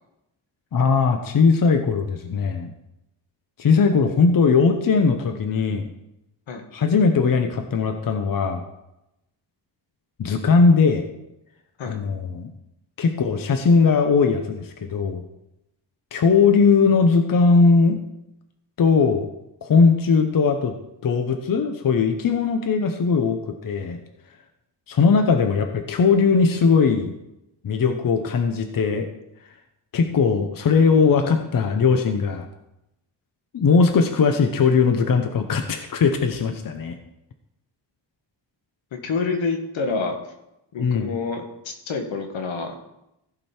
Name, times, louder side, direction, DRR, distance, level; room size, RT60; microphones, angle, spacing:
voice 1, 0.7-2.7 3.6-5.9 6.7-8.6 10.2-11.0 11.9-12.5 13.0-15.2 16.1-18.0 18.8-19.3 19.6-20.7 21.0-24.0 24.9-27.1 27.6-29.1 29.9-32.5 33.5-37.0 40.8-41.1, left 5 dB, 50° left, 6 dB, 0.9 m, -19 dB
voice 2, 38.9-40.3 40.7-42.7, left 4 dB, 85° left, 4 dB, 1.7 m, -28 dB
15.5 x 5.3 x 4.4 m, 0.88 s
wide cardioid pair, 125°, 45 cm